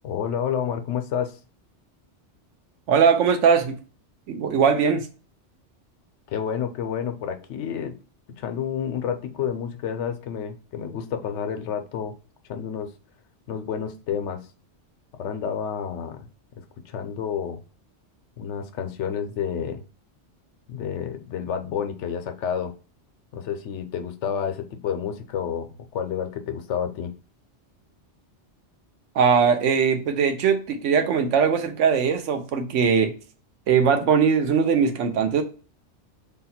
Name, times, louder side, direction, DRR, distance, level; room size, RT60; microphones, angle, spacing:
voice 1, 0.0-1.4 6.3-8.0 8.3-12.2 12.5-12.9 13.5-14.5 15.2-16.3 16.9-17.6 18.4-19.8 20.7-22.7 23.3-27.1, left 8 dB, 80° left, 0.9 m, -29 dB
voice 2, 2.9-3.8 4.3-5.1 29.2-33.1 33.7-35.4, right 6 dB, 85° right, 1.0 m, -20 dB
3.5 x 2.3 x 4.1 m
omnidirectional pair, 1.2 m